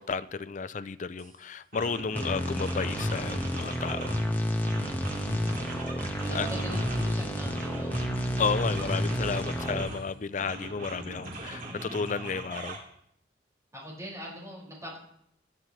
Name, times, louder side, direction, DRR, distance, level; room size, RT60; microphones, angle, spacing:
voice 1, 0.0-4.2 5.8-5.9 6.3-6.5 8.4-12.8, left 5 dB, 45° left, 15 dB, 0.5 m, -32 dB
sound 1, 1.2-1.3 1.7-4.3 4.6-7.2 7.5-10.0 10.4-12.8, right 2 dB, 50° right, 2.7 m, -40 dB
sound 2, 2.1-9.8, equal, 10° left, 1.3 m, -30 dB
voice 2, 6.2-7.9 13.7-15.0, equal, 15° right, -5 dB, 5.4 m, -42 dB
Acoustic guitar, 6.3-10.7 11.1-11.5, left 2 dB, 65° left, 5.4 m, -47 dB
19.5 x 11.0 x 3.2 m, 0.73 s
head